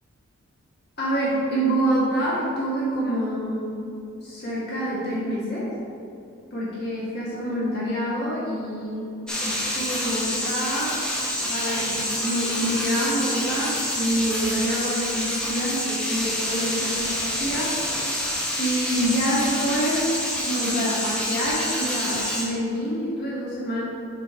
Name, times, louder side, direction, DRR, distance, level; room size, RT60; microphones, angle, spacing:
voice 1, 1.0-3.8 4.2-5.7 6.5-9.1 9.4-11.0 11.4-17.8 18.6-20.1 20.4-23.8, equal, 45° left, -8 dB, 1.5 m, -26 dB
sound 1, 9.3-22.4, equal, 5° left, 0.7 m, -27 dB
6.1 x 4.1 x 4.8 m, 2.7 s
head